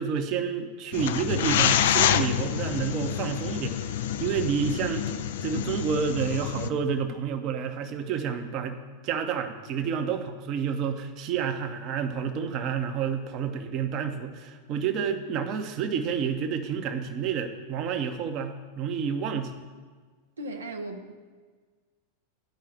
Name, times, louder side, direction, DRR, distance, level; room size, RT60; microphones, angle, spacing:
voice 1, 0.0-3.9 4.2-5.0 5.4-19.6, right 7 dB, 35° right, 5 dB, 0.9 m, -29 dB
sound 1, 0.9-6.7, left 10 dB, 55° left, 0.4 m, -27 dB
voice 2, 20.4-21.1, right 1 dB, 75° right, 4 dB, 0.8 m, -36 dB
10.5 x 5.6 x 6.6 m, 1.5 s
figure-of-eight pair, 90°, 0 cm